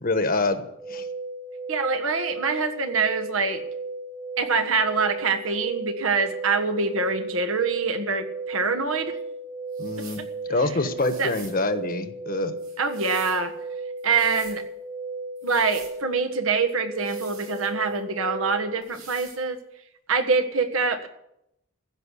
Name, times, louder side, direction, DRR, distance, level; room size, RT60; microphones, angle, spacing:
voice 1, 0.0-0.6 0.9-1.1 9.8-10.2 10.5-12.5, left 2 dB, 40° left, 9 dB, 1.2 m, -25 dB
sound 1, 0.7-18.8, right 3 dB, 10° right, 1.1 m, -35 dB
voice 2, 1.7-3.6 4.4-9.2 11.2-11.3 12.8-13.5 14.0-14.6 15.4-19.6 20.1-21.1, right 4 dB, 70° right, 6 dB, 1.5 m, -25 dB
sound 2, 9.7-10.3 11.0-11.6 12.6-13.4 14.0-14.6 15.4-16.0 16.9-18.0 18.8-19.4, right 5 dB, 90° right, 6.8 m, -46 dB
15.5 x 6.3 x 9.9 m, 0.82 s
head